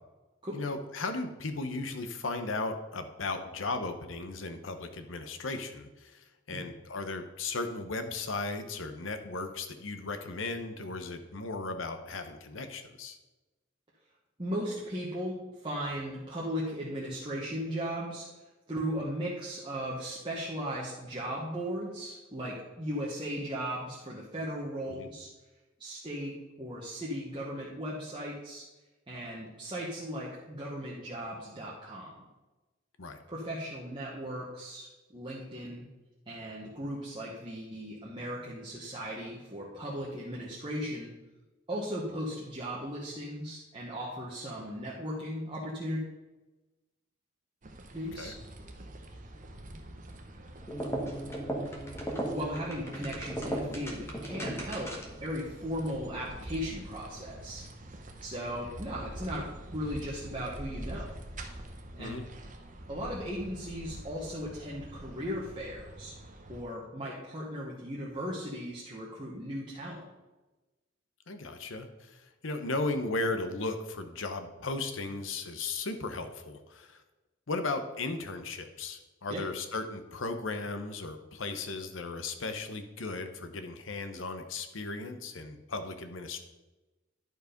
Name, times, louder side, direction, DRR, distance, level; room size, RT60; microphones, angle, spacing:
voice 1, 0.5-13.2 24.9-25.1 33.0-33.2 48.1-48.3 62.0-62.3 71.3-77.0 77.5-86.4, left 3 dB, 85° left, 8 dB, 0.9 m, -36 dB
voice 2, 14.4-18.3 18.7-25.3 25.8-28.6 29.1-32.1 33.3-35.9 36.3-41.1 41.7-46.0 47.9-48.3 52.3-54.9 55.2-57.6 58.2-61.2 62.0-62.2 62.9-66.1 66.5-70.0 79.3-79.4, equal, 25° right, -6 dB, 1.3 m, -37 dB
sound 1, 47.6-66.6, right 1 dB, 40° right, 0.9 m, -46 dB
sound 2, 50.6-55.2, right 1 dB, 15° left, 1.3 m, -36 dB
11.0 x 4.7 x 5.1 m, 1.1 s
head